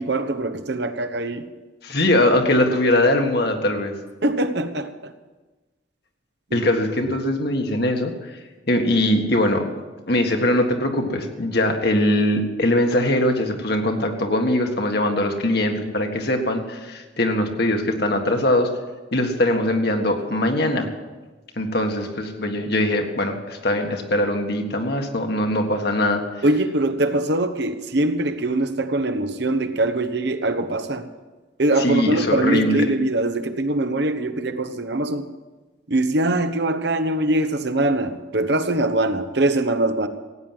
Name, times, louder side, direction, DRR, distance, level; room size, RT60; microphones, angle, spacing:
voice 1, 0.0-1.5 4.2-5.1 6.5-6.6 26.4-31.1 31.6-35.3 35.9-40.1, right 2 dB, 60° right, 9 dB, 1.0 m, -22 dB
voice 2, 1.8-3.9 6.5-8.4 8.7-9.7 10.1-18.7 19.1-20.9 21.6-26.2 31.8-32.9, left 1 dB, 55° left, 4 dB, 1.7 m, -21 dB
16.0 x 9.4 x 7.6 m, 1.2 s
head